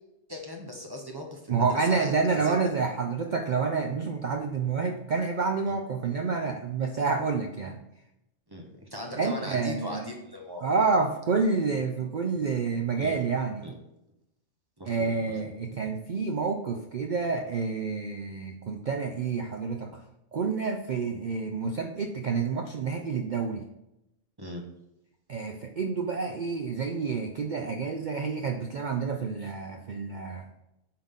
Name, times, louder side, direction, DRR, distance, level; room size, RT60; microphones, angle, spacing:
voice 1, 0.3-2.7 5.7-5.8 8.5-10.6 13.0-13.2 13.6-13.7 14.8-15.4 24.4-24.7 29.4-29.5, equal, 20° right, 1 dB, 0.9 m, -39 dB
voice 2, 1.5-7.8 9.2-10.1 10.6-13.7 14.8-20.0 20.3-23.7 25.3-30.5, right 4 dB, 70° right, 4 dB, 0.4 m, -28 dB
8.8 x 3.8 x 3.7 m, 0.87 s
omnidirectional pair, 1.4 m